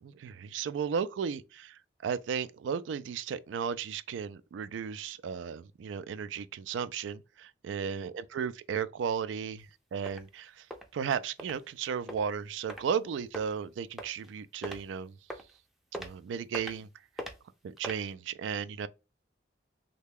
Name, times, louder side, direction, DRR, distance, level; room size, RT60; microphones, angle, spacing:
voice 1, 0.0-10.7 10.9-15.2 15.9-16.9 17.6-18.9, right 7 dB, 85° right, 0.3 m, -35 dB
sound 1, 9.6-9.7 10.1-10.2 10.7-10.8 11.4-11.5 12.1-12.2 12.7-12.8 13.3-13.5 14.0-14.3 14.6-14.8 15.3-15.5 15.9-16.1 16.5-16.8 17.2-17.3 17.8-18.0, equal, ahead, 0.4 m, -39 dB
3.3 x 2.2 x 3.4 m
head